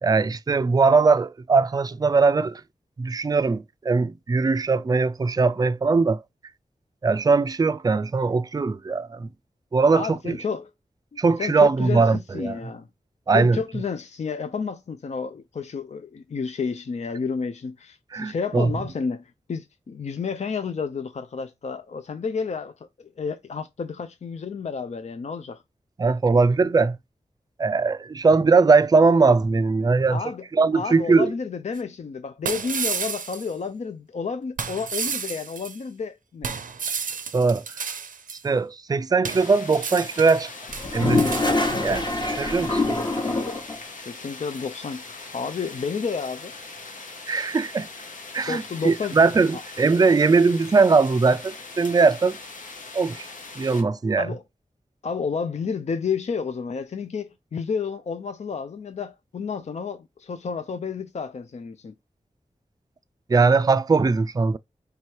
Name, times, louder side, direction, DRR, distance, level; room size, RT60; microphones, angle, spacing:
voice 1, 0.0-2.6 3.0-6.2 7.0-9.3 9.7-10.4 11.2-12.6 13.3-13.6 18.1-18.7 26.0-27.0 27.6-30.2 30.5-31.3 37.3-37.6 38.4-40.5 40.9-41.4 41.8-42.8 47.3-47.9 48.3-52.4 52.9-53.3 53.6-54.3 63.3-64.6, right 4 dB, 30° right, 0.3 m, -20 dB
voice 2, 9.9-10.7 11.1-12.9 13.3-25.6 30.1-30.4 30.7-36.6 44.1-46.5 48.5-49.2 49.5-49.6 54.2-54.4 55.0-61.9, left 5 dB, 55° left, 0.4 m, -31 dB
sound 1, 31.8-31.9 32.5-33.5 34.6-35.8 36.4-38.4 39.2-40.4 40.7-41.8, right 6 dB, 90° right, 0.5 m, -32 dB
sound 2, 39.3-53.8, left 3 dB, 75° left, 0.9 m, -41 dB
Toilet flush, 40.7-43.8, left 2 dB, 35° left, 1.0 m, -24 dB
3.3 x 3.1 x 4.5 m
wide cardioid pair, 65°, 13 cm